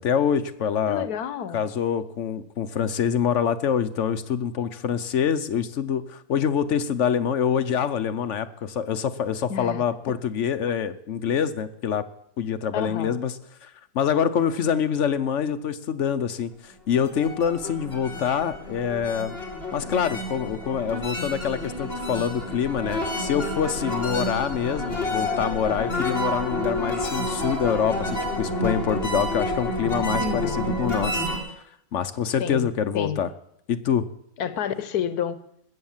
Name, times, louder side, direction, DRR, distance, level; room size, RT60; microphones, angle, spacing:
voice 1, 0.0-1.1 1.5-12.0 12.4-13.3 13.6-19.3 19.7-31.2 31.9-33.3 33.7-34.0, left 8 dB, 60° left, 11 dB, 1.0 m, -25 dB
voice 2, 0.9-1.6 9.5-9.8 12.7-13.2 30.2-30.6 32.4-32.7 32.9-33.2 34.4-35.4, left 8 dB, 85° left, 14 dB, 1.4 m, -29 dB
sound 1, 16.9-31.4, left 1 dB, 40° left, 2.7 m, -29 dB
20.5 x 7.5 x 7.2 m, 0.75 s
omnidirectional pair, 1.6 m